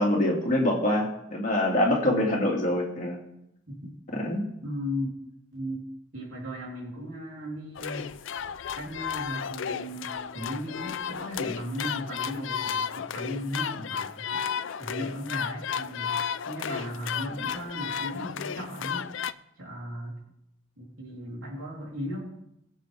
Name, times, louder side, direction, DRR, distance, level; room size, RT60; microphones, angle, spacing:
voice 1, 0.0-3.2 4.1-4.5, left 1 dB, 35° left, -1 dB, 2.2 m, -25 dB
voice 2, 3.7-4.0 4.6-5.1 5.5-5.8 6.1-8.1 8.7-14.5 14.8-16.2 16.4-19.1 19.6-20.2 20.8-22.3, equal, 75° right, -3 dB, 3.5 m, -36 dB
sound 1, 7.7-19.3, left 7 dB, 60° left, 0.4 m, -33 dB
21.5 x 7.2 x 3.4 m, 0.82 s
head